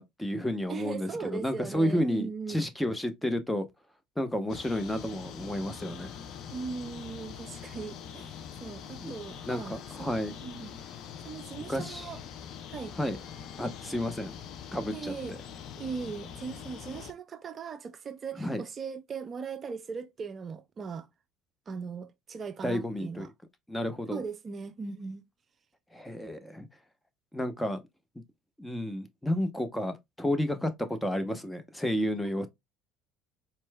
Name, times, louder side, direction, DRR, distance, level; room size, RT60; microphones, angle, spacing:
voice 1, 0.0-3.7 4.2-6.1 9.0-9.1 9.5-10.4 11.7-12.1 13.0-13.2 13.6-14.3 14.7-15.4 18.4-18.6 22.6-23.3 23.7-24.2 25.9-26.7 27.3-27.8 28.6-32.5, left 1 dB, 5° left, 0.8 m, -31 dB
voice 2, 0.7-2.7 6.5-10.1 10.4-10.7 11.2-12.2 12.7-12.9 14.9-15.3 15.8-21.1 21.7-23.3 24.1-25.2, right 5 dB, 40° right, 0.5 m, -39 dB
sound 1, 4.5-17.1, left 8 dB, 55° left, 0.5 m, -44 dB
4.3 x 3.1 x 2.2 m
hypercardioid pair, 70°, 0 cm